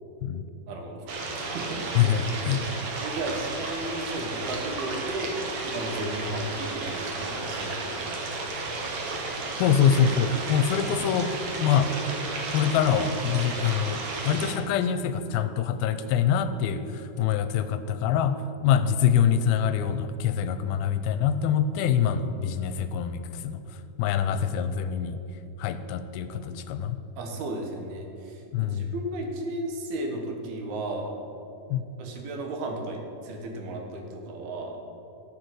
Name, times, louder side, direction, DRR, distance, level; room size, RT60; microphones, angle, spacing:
voice 1, 0.7-1.2 1.5-1.9 2.5-2.6 3.0-5.4 5.6-8.2 27.2-31.2 32.0-34.8, right 1 dB, 90° right, 2 dB, 3.5 m, -34 dB
sound 1, 1.1-14.5, right 3 dB, 55° right, 2.4 m, -33 dB
voice 2, 2.0-2.6 9.6-11.9 12.5-25.2 25.6-27.0 28.5-28.9 31.7-31.9, left 8 dB, 85° left, 10 dB, 2.4 m, -25 dB
11.5 x 7.5 x 7.9 m, 2.9 s
omnidirectional pair, 4.3 m